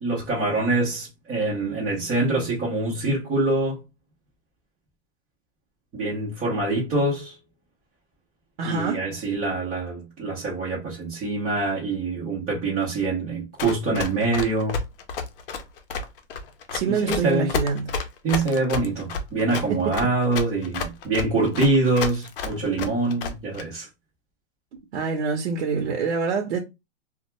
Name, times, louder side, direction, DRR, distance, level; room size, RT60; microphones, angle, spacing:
voice 1, 0.0-3.8 5.9-7.4 8.6-14.8 16.9-17.5 18.2-23.9, right 2 dB, 10° right, 0.4 m, -25 dB
voice 2, 8.6-9.0 16.7-17.9 19.7-19.8 24.9-26.6, right 5 dB, 60° right, 0.7 m, -25 dB
Run, 13.6-23.6, left 4 dB, 50° left, 0.6 m, -30 dB
2.3 x 2.2 x 2.9 m
hypercardioid pair, 155°, 34 cm